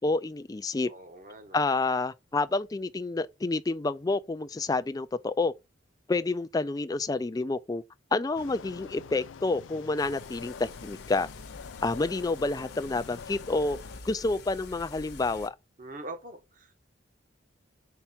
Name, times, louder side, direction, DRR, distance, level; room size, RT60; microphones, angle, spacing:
voice 1, 0.0-0.9 1.5-5.5 6.1-7.8 8.1-11.3 11.8-13.8 14.0-15.6, left 3 dB, 20° left, 0.3 m, -29 dB
voice 2, 0.9-1.6 15.8-16.8, right 2 dB, 45° right, 1.3 m, -43 dB
sound 1, 8.4-14.0, left 6 dB, 90° left, 0.4 m, -46 dB
sound 2, 10.0-15.5, left 3 dB, 55° left, 0.9 m, -47 dB
5.8 x 4.5 x 4.3 m
head